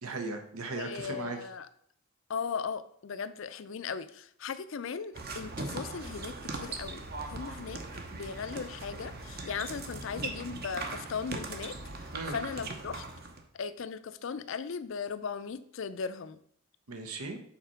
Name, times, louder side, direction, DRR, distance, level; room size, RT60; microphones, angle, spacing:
voice 1, 0.0-1.4 12.1-12.4 16.9-17.4, right 3 dB, 85° right, 6 dB, 1.1 m, -37 dB
voice 2, 0.7-1.7 2.3-7.8 8.1-11.8 12.3-13.0 13.5-16.4, left 6 dB, 60° left, 13 dB, 0.4 m, -37 dB
sound 1, 5.1-13.4, right 3 dB, 45° right, 0.8 m, -40 dB
5.8 x 4.1 x 5.7 m, 0.66 s
head